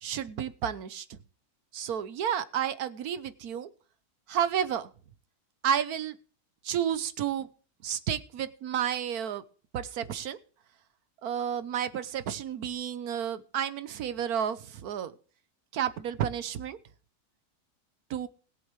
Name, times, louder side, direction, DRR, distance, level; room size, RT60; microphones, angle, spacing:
voice 1, 0.0-1.2 1.7-3.7 4.3-4.9 5.6-6.2 6.6-7.5 7.8-9.4 9.7-10.4 11.2-15.1 15.7-16.8 18.1-18.3, right 9 dB, 75° right, 13 dB, 1.3 m, -31 dB
21.0 x 7.7 x 3.2 m, 0.41 s
omnidirectional pair, 1.6 m